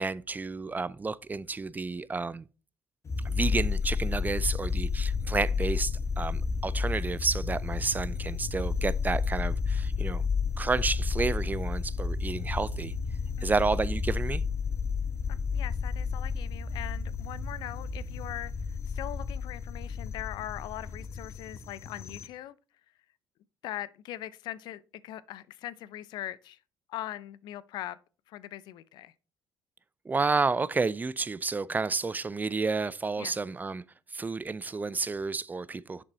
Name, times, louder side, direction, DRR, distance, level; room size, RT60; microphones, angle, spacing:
voice 1, 0.0-2.5 3.2-10.2 10.6-12.9 13.4-14.4 30.1-33.8 34.1-36.0, right 4 dB, 25° right, 0.4 m, -30 dB
sound 1, 3.0-22.3, left 5 dB, 40° left, 1.0 m, -31 dB
voice 2, 15.3-22.6 23.6-26.6 26.9-28.0 28.3-29.1 33.2-33.4, left 13 dB, 75° left, 0.5 m, -41 dB
7.0 x 5.3 x 4.1 m
supercardioid pair, 75°, 7 cm